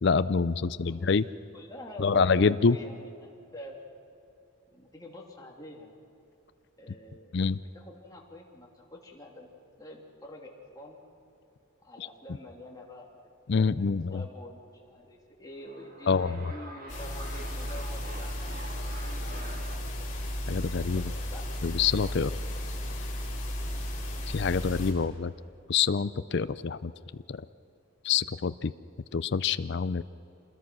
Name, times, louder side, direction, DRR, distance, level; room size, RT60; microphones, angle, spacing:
voice 1, 0.0-1.3 2.0-2.8 7.3-7.6 13.5-14.2 16.1-16.4 20.5-21.1 21.6-22.3 24.3-25.3 25.7-26.9 27.3-27.4 28.0-28.7 29.1-30.0, left 5 dB, 55° left, 14 dB, 0.5 m, -26 dB
voice 2, 0.8-3.8 4.7-5.9 6.8-7.4 7.7-9.5 9.8-11.0 11.8-19.9 20.9-21.7 22.1-22.4, left 1 dB, 20° left, -2 dB, 2.9 m, -47 dB
sound 1, 15.4-19.8, right 1 dB, 45° right, 2.1 m, -46 dB
sound 2, 16.9-24.9, left 1 dB, 40° left, 4.4 m, -34 dB
27.0 x 20.5 x 6.2 m, 2.8 s
head